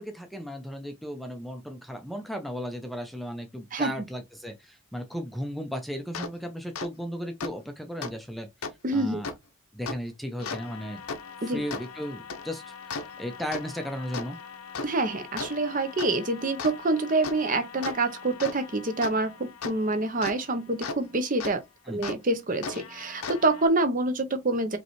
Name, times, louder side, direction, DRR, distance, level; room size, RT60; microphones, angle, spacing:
voice 1, 0.0-9.3 9.7-11.0 11.4-14.4 21.9-22.0, equal, ahead, 0.5 m, -36 dB
voice 2, 3.7-4.1 8.8-9.2 11.4-11.6 14.8-21.6 21.9-24.8, right 2 dB, 40° right, 0.7 m, -27 dB
sound 1, 6.1-6.3 6.8-6.9 7.4-7.5 8.0-8.1 8.6-8.7 9.2-9.4 9.9-10.0 10.4-21.0 21.4-21.5 22.0-22.2 22.6-23.7, left 4 dB, 90° left, 0.8 m, -38 dB
5.1 x 3.2 x 3.1 m
head